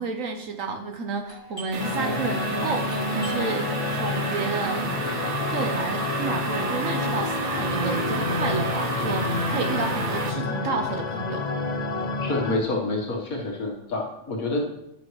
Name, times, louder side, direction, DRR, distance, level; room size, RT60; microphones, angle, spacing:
voice 1, 0.0-3.6 3.9-4.9 5.5-11.5, right 4 dB, 70° right, 4 dB, 1.3 m, -31 dB
Doorbell, 1.2-10.6 10.9-11.0 11.6-12.0 12.3-13.7, right 1 dB, 20° right, 3.0 m, -47 dB
sound 1, 1.7-10.3, right 4 dB, 90° right, 1.5 m, -32 dB
sound 2, 1.8-12.6, left 3 dB, 40° left, 0.6 m, -28 dB
voice 2, 12.2-14.6, left 2 dB, 80° left, -1 dB, 2.0 m, -28 dB
15.0 x 6.2 x 3.2 m, 0.84 s
omnidirectional pair, 1.4 m